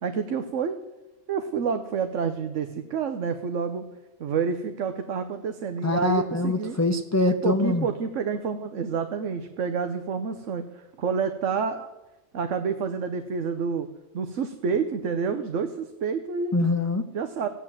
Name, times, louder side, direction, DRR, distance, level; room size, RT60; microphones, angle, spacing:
voice 1, 0.0-0.8 1.3-3.9 4.2-6.8 7.4-11.9 12.3-13.9 14.1-16.6 17.1-17.5, right 6 dB, 85° right, 8 dB, 1.2 m, -28 dB
voice 2, 5.8-7.9 16.5-17.0, left 2 dB, 20° left, 6 dB, 0.6 m, -24 dB
15.0 x 9.7 x 7.5 m, 1.0 s
omnidirectional pair, 1.2 m